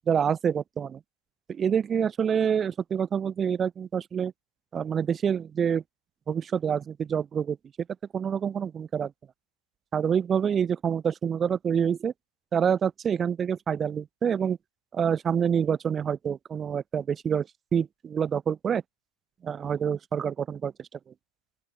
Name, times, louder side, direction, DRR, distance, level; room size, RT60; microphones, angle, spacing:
voice 1, 0.1-1.0 1.5-4.3 4.7-5.8 6.3-7.6 8.1-9.1 9.9-12.1 12.5-14.6 14.9-17.5 17.7-18.8 19.4-20.9, right 7 dB, 20° right, 4.5 m, -27 dB
open air
figure-of-eight pair, 90°, 0 cm